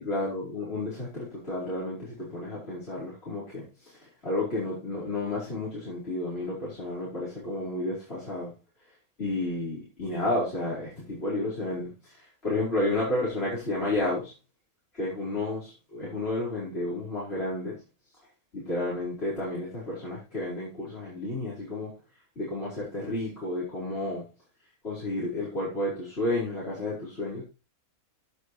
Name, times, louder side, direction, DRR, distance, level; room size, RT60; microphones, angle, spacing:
voice 1, 0.0-8.5 9.2-14.3 14.9-17.8 18.5-21.9 22.4-24.2 24.8-27.4, left 2 dB, 45° left, -7 dB, 5.4 m, -31 dB
16.5 x 8.2 x 3.3 m, 0.31 s
omnidirectional pair, 1.5 m